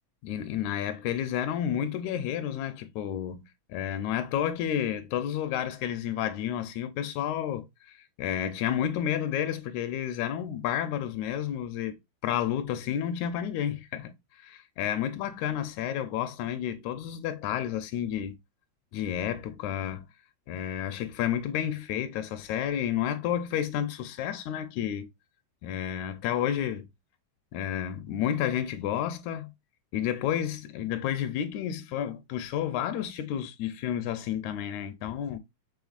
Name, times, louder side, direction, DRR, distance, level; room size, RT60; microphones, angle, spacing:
voice 1, 0.2-3.4 3.7-11.9 12.2-18.4 18.9-20.0 20.5-25.1 25.6-26.8 27.5-29.5 29.9-35.4, left 10 dB, 80° left, 1.8 m, -31 dB
6.3 x 3.2 x 2.4 m
omnidirectional pair, 3.4 m